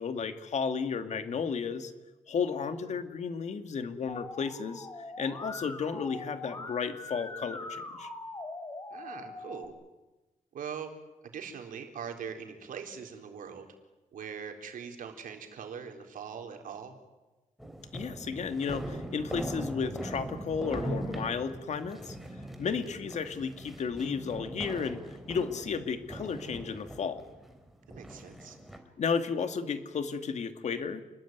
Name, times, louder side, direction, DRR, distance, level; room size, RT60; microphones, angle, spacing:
voice 1, 0.0-1.9 2.3-4.9 5.2-8.1 17.9-22.2 22.6-25.0 25.3-27.2 29.0-31.0, left 6 dB, 55° left, 8 dB, 2.1 m, -33 dB
Musical instrument, 4.1-9.6, left 2 dB, 25° left, 4.5 m, -42 dB
voice 2, 8.9-9.8 10.5-10.9 11.2-13.7 14.1-17.0 22.8-22.9 27.9-28.6, right 7 dB, 85° right, 4 dB, 4.1 m, -42 dB
sound 1, 17.6-28.8, right 1 dB, ahead, 3.4 m, -40 dB
29.0 x 21.0 x 9.4 m, 1.1 s
wide cardioid pair, 145°, 14 cm